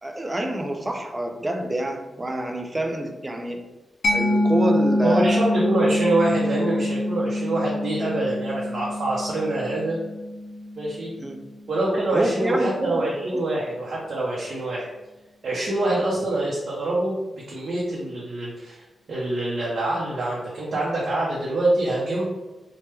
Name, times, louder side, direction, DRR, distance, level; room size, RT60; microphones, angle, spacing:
voice 1, 0.0-3.6 4.1-5.5 11.2-11.4 12.1-13.0 13.3-13.4, right 1 dB, 25° right, 3 dB, 0.5 m, -27 dB
Mallet percussion, 4.0-11.4, left 1 dB, 75° left, 0.4 m, -25 dB
voice 2, 5.0-10.0 10.8-11.1 11.7-14.9 15.4-17.2 17.5-22.2, right 2 dB, 60° right, -5 dB, 0.6 m, -25 dB
3.0 x 2.1 x 3.2 m, 1.1 s
cardioid pair, 70°, 0 cm